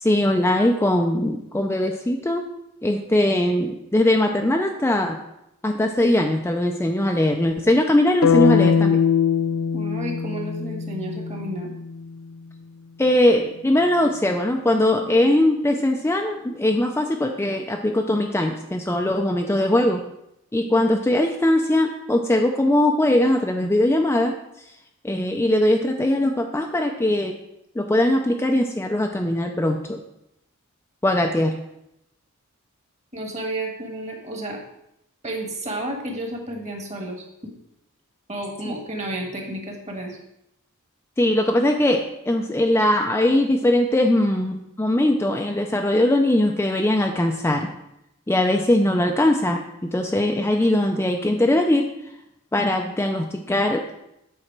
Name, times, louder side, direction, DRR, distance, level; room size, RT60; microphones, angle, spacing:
voice 1, 0.0-2.4 2.8-5.2 5.6-9.0 13.0-20.0 20.5-24.3 25.0-27.4 27.8-30.0 31.0-31.5 38.7-38.8 41.2-47.7 48.3-51.9 52.5-54.0, left 1 dB, 10° left, 2 dB, 0.5 m, -20 dB
sound 1, 8.2-12.3, left 7 dB, 70° left, 0.3 m, -21 dB
voice 2, 9.7-11.7 33.1-34.6 35.2-37.5 38.3-40.2, right 1 dB, 30° right, 1 dB, 1.5 m, -31 dB
7.9 x 4.2 x 5.9 m, 0.83 s
head